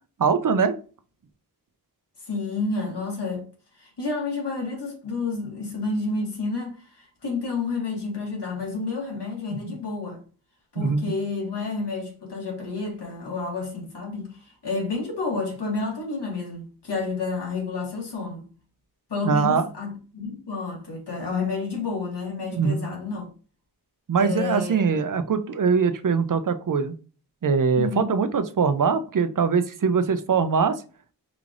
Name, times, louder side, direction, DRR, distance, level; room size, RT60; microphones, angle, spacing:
voice 1, 0.2-0.8 10.8-11.1 19.2-19.7 22.5-22.8 24.1-26.9 27.4-30.8, right 5 dB, 55° right, 0.5 m, -22 dB
voice 2, 2.2-3.5 3.8-10.2 10.7-18.5 19.1-23.3 24.2-24.8 27.7-28.1, left 3 dB, 80° left, 1.8 m, -30 dB
4.9 x 3.2 x 2.5 m
wide cardioid pair, 90°, 40 cm